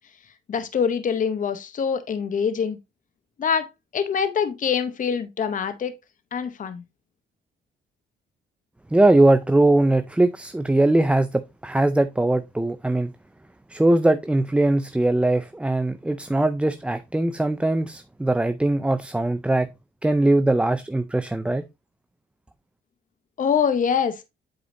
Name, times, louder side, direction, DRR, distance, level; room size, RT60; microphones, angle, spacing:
voice 1, 0.5-2.8 3.4-3.7 3.9-6.0 6.3-6.8 23.4-24.1, left 7 dB, 40° left, 0.8 m, -24 dB
voice 2, 8.9-13.1 13.7-19.7 20.0-21.6, right 2 dB, 5° right, 0.4 m, -21 dB
8.0 x 4.9 x 2.6 m
cardioid pair, 90°, 20 cm